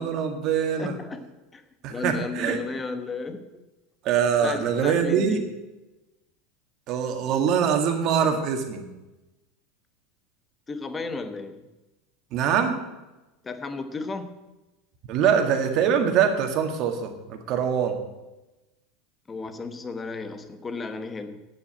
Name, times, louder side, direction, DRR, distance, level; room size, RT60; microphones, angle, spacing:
voice 1, 0.0-0.9 1.8-2.6 4.0-5.4 6.9-8.8 12.3-12.8 15.1-17.9, right 7 dB, 50° right, 5 dB, 1.9 m, -23 dB
voice 2, 0.8-1.6 1.9-3.5 4.4-5.5 10.7-11.7 13.4-14.4 19.3-21.5, left 3 dB, 15° left, 9 dB, 1.1 m, -34 dB
9.0 x 7.3 x 9.0 m, 1.1 s
supercardioid pair, 130°, 0 cm